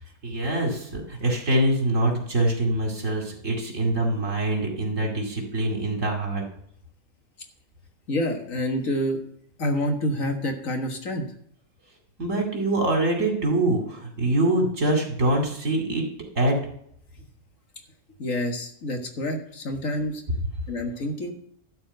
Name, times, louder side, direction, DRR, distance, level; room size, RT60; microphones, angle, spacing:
voice 1, 0.2-6.4 12.2-16.1 16.4-16.6, right 1 dB, 75° right, 0 dB, 2.8 m, -24 dB
voice 2, 8.1-9.2 9.6-11.2 18.2-20.2 20.7-21.3, left 1 dB, 85° left, 3 dB, 2.0 m, -27 dB
12.5 x 4.5 x 7.8 m, 0.68 s
omnidirectional pair, 1.3 m